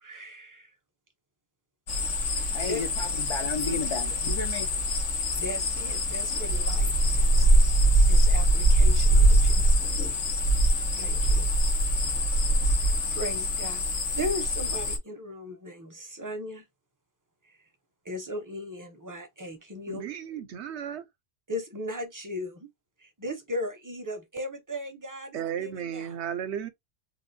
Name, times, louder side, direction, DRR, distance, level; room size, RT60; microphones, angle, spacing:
voice 1, 0.0-0.7 2.4-2.8 5.4-7.5 8.1-9.8 11.0-11.5 12.7-16.6 17.4-17.6 18.0-20.0 21.5-22.7 23.0-26.2, left 1 dB, 20° right, 0.5 m, -37 dB
sound 1, 1.9-15.0, right 1 dB, 85° left, 1.3 m, -23 dB
voice 2, 2.5-4.7, left 4 dB, 50° left, 0.3 m, -33 dB
voice 3, 19.9-21.1 25.3-26.7, right 9 dB, 70° right, 0.9 m, -34 dB
3.7 x 2.5 x 2.6 m
omnidirectional pair, 1.2 m